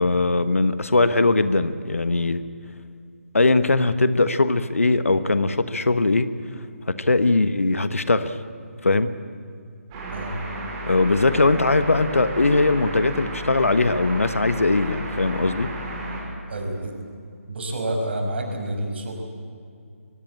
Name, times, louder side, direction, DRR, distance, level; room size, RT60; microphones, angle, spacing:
voice 1, 0.0-2.4 3.3-6.3 6.9-8.4 8.8-9.1 10.9-15.7, left 3 dB, 65° left, 12 dB, 1.3 m, -20 dB
sound 1, 9.9-16.2, equal, 20° right, 6.1 m, -33 dB
voice 2, 16.5-16.9 17.5-19.1, right 1 dB, 50° right, 3 dB, 5.5 m, -29 dB
23.0 x 21.0 x 8.7 m, 2.4 s
figure-of-eight pair, 145°, 8 cm